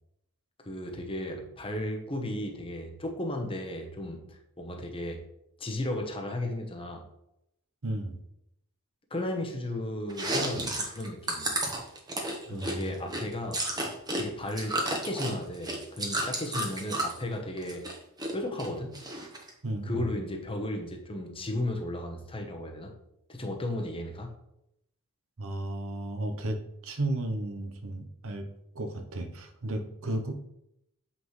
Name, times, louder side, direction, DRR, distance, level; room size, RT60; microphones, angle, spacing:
voice 1, 0.6-5.2 5.6-7.1 9.1-11.5 12.5-13.6 14.1-17.9 18.3-18.9 19.8-22.9 23.3-24.3, left 1 dB, 25° left, 3 dB, 1.0 m, -34 dB
voice 2, 7.8-8.2 12.5-12.8 19.6-20.1 25.4-28.5 28.7-30.4, right 1 dB, 65° right, 6 dB, 0.9 m, -34 dB
Chewing mastication, 10.1-14.2 14.5-17.2 17.6-18.3 18.6-19.5, right 1 dB, 20° right, 1.2 m, -32 dB
7.3 x 5.7 x 3.2 m, 0.81 s
head